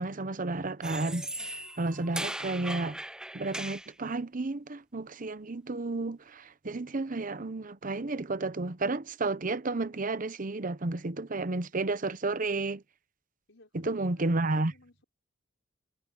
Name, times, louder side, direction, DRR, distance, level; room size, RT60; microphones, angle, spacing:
voice 1, 0.0-3.0 3.3-12.8 13.8-14.7, right 2 dB, 40° right, 0.8 m, -32 dB
sound 1, 0.8-3.9, right 1 dB, 5° right, 0.5 m, -38 dB
voice 2, 13.5-15.1, left 2 dB, 70° left, 5.8 m, -60 dB
head